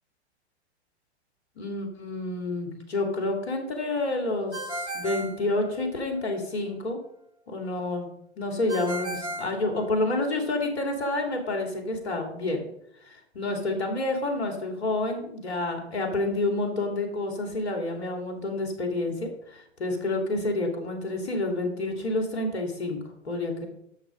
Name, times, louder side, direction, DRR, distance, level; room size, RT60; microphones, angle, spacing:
voice 1, 1.6-7.0 7.5-8.1 8.4-12.6 13.0-23.7, left 2 dB, 65° left, 3 dB, 3.0 m, -29 dB
Ringtone, 4.5-6.2 8.7-10.4, right 1 dB, 80° right, 2.5 m, -36 dB
11.0 x 7.5 x 5.1 m, 0.75 s
figure-of-eight pair, 95°, 34 cm